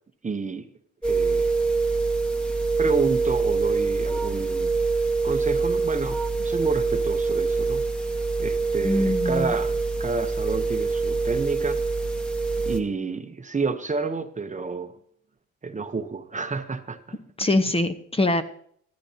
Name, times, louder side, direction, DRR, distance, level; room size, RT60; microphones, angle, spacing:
voice 1, 0.2-0.7 1.0-1.5 2.8-4.7 5.2-7.8 8.4-11.8 12.7-14.9 15.6-17.0, right 4 dB, 25° right, 9 dB, 0.9 m, -30 dB
sound 1, 1.0-12.8, right 4 dB, 5° left, 1.2 m, -25 dB
voice 2, 8.8-9.5 17.4-18.4, left 2 dB, 20° left, 8 dB, 0.9 m, -23 dB
14.5 x 13.5 x 2.8 m, 0.63 s
cardioid pair, 90°, 30 cm